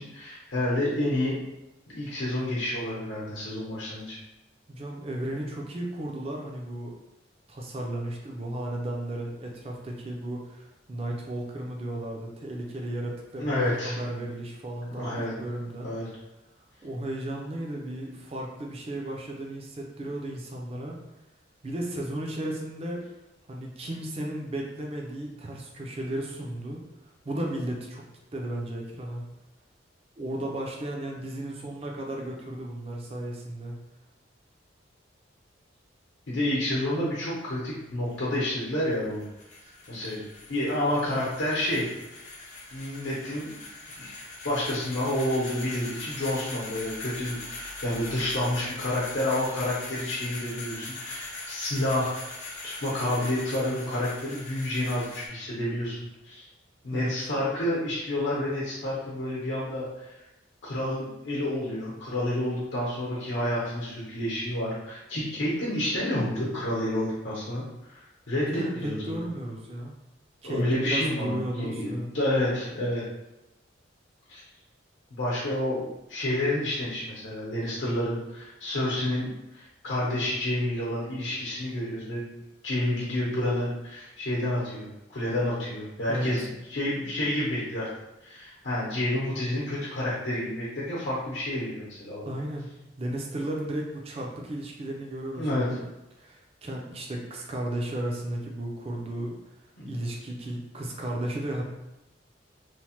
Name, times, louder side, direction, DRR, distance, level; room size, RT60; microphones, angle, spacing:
voice 1, 0.0-1.3 1.9-4.2 13.4-14.0 15.0-15.3 15.8-16.1 36.3-39.2 39.9-40.2 40.5-41.9 42.7-43.5 44.0-44.2 44.4-52.1 52.8-56.0 56.2-56.5 56.8-60.1 60.6-69.2 70.4-73.0 74.3-74.4 75.1-82.3 82.6-87.9 88.2-92.3 95.3-95.7 99.8-99.9, left 1 dB, 70° left, -6 dB, 0.8 m, -29 dB
voice 2, 4.7-7.0 7.5-15.9 16.8-21.0 21.6-23.0 23.5-26.8 27.2-28.1 28.3-29.3 30.2-33.8 56.9-57.1 68.5-69.9 70.4-72.1 86.1-86.5 92.3-92.7 93.0-95.8 96.2-99.4 99.8-101.6, right 1 dB, 30° right, -1 dB, 0.4 m, -34 dB
sound 1, 37.9-55.3, left 2 dB, 35° left, 0.6 m, -41 dB
3.1 x 2.0 x 2.9 m, 0.95 s
head